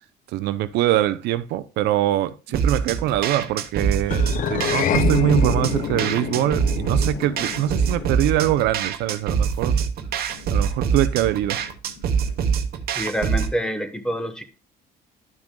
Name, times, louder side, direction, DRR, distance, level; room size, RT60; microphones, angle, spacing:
voice 1, 0.3-9.8 10.5-11.6, right 13 dB, 85° right, 0.5 m, -23 dB
sound 1, 2.5-12.4, left 4 dB, 75° left, 4.6 m, -48 dB
sound 2, 2.5-13.5, right 6 dB, 65° right, 1.0 m, -24 dB
sound 3, 4.1-8.6, left 9 dB, 50° left, 0.5 m, -27 dB
voice 2, 12.9-14.4, equal, 5° left, 1.1 m, -26 dB
12.0 x 6.0 x 2.2 m
cardioid pair, 110°, 17 cm